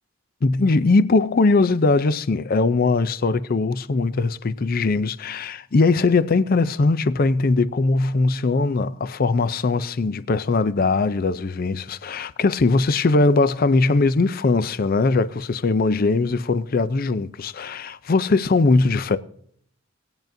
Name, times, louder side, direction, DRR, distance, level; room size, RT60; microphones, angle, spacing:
voice 1, 0.4-19.2, left 3 dB, 45° left, 0.4 m, -20 dB
19.0 x 8.9 x 2.6 m
head